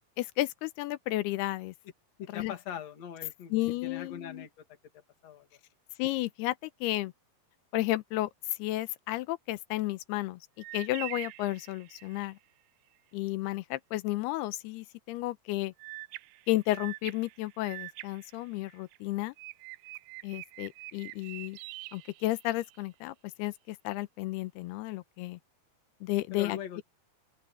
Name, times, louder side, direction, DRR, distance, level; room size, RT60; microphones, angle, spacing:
voice 1, 0.2-1.7 2.3-2.5 3.5-4.5 6.0-7.1 7.7-8.3 8.6-10.4 10.7-12.4 13.1-15.7 16.5-19.3 20.2-21.6 21.9-25.4 26.0-26.8, left 17 dB, 85° left, 2.7 m, -32 dB
voice 2, 2.2-3.5 3.8-4.6 5.2-5.5 26.3-26.8, left 8 dB, 45° left, 3.2 m, -41 dB
sound 1, 10.6-12.3 15.8-19.0 19.4-22.8, right 20 dB, 80° right, 2.2 m, -45 dB
open air
omnidirectional pair, 4.8 m